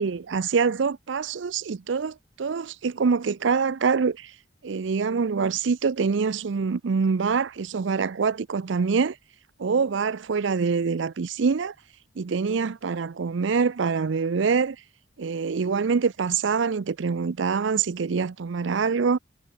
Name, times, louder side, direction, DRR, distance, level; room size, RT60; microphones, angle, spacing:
voice 1, 0.0-4.3 4.6-9.2 9.6-11.7 12.2-14.8 15.2-19.2, right 5 dB, 75° right, 0.5 m, -25 dB
head